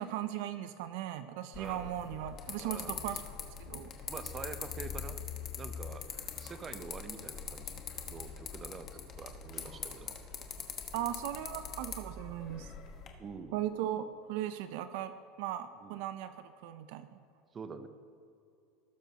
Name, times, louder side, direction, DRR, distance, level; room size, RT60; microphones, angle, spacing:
voice 1, 0.0-3.2 3.7-3.9 10.9-12.7 13.5-17.2, right 12 dB, 70° right, 11 dB, 0.4 m, -38 dB
sound 1, 1.5-13.1, left 7 dB, 35° left, 1.2 m, -43 dB
voice 2, 1.6-2.1 2.6-3.1 4.1-5.2 5.6-6.0 6.4-10.1 13.2-13.6 15.8-16.0 17.5-17.9, right 5 dB, 25° right, 10 dB, 0.7 m, -46 dB
18.5 x 6.9 x 2.8 m, 2.6 s
supercardioid pair, 125°, 0 cm